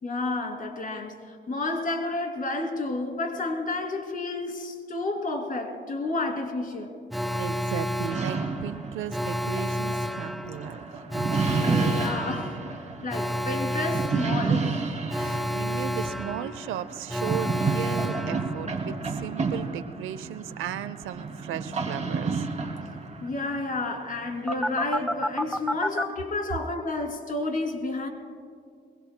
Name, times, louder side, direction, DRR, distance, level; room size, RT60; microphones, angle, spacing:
voice 1, 0.0-7.0 11.5-12.5 13.0-14.8 23.2-28.1, left 2 dB, 45° left, 3 dB, 2.7 m, -30 dB
Alarm, 7.1-19.0 24.5-26.0, equal, ahead, 0.5 m, -31 dB
voice 2, 7.4-10.9 15.2-22.5, right 11 dB, 85° right, 13 dB, 0.7 m, -36 dB
sound 1, 8.1-25.8, right 4 dB, 35° right, 2.4 m, -31 dB
23.0 x 22.5 x 2.2 m, 2.3 s
cardioid pair, 90°, 20 cm